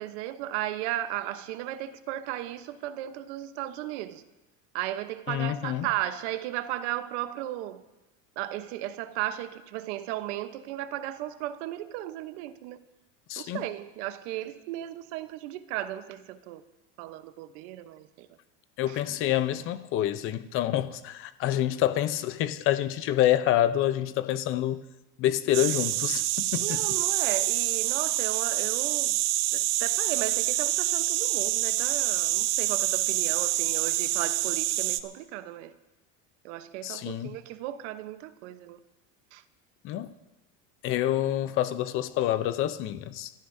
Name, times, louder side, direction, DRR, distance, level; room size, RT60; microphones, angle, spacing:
voice 1, 0.0-4.2 4.7-7.8 8.4-12.8 13.4-16.6 17.0-18.3 18.9-19.0 26.6-29.2 29.5-35.7 36.4-38.8 39.3-39.4, right 13 dB, 80° right, 1.0 m, -35 dB
voice 2, 5.3-5.9 13.3-13.6 18.8-24.8 25.2-26.8 36.8-37.4 39.8-40.1 40.8-43.3, left 12 dB, 35° left, 0.6 m, -27 dB
sound 1, 25.5-35.0, right 15 dB, 50° right, 0.6 m, -27 dB
30.0 x 13.5 x 2.7 m
cardioid pair, 170°, 35 cm